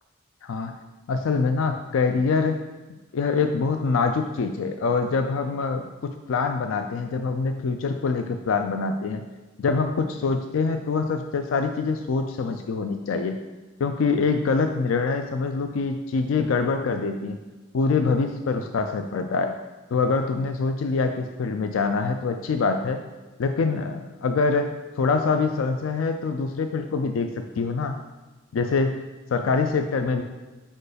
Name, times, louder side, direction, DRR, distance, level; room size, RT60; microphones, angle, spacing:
voice 1, 0.4-0.8 1.1-2.6 3.1-9.2 9.6-13.4 13.8-17.4 17.7-19.6 19.9-23.0 23.4-28.0 28.5-29.0 29.3-30.2, left 4 dB, 90° left, 6 dB, 0.4 m, -25 dB
4.8 x 4.5 x 5.0 m, 1.2 s
head